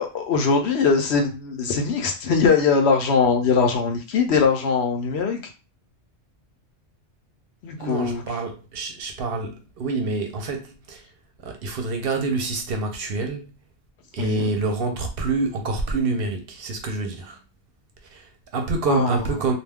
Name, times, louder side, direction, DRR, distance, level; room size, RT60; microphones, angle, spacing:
voice 1, 0.0-5.4 7.6-8.2 14.2-14.5 18.9-19.1, left 5 dB, 75° left, 0.9 m, -21 dB
voice 2, 7.8-11.1 11.4-13.5 14.1-17.4 18.0-19.5, right 3 dB, 65° right, 0.7 m, -27 dB
2.4 x 2.2 x 3.4 m
omnidirectional pair, 1.1 m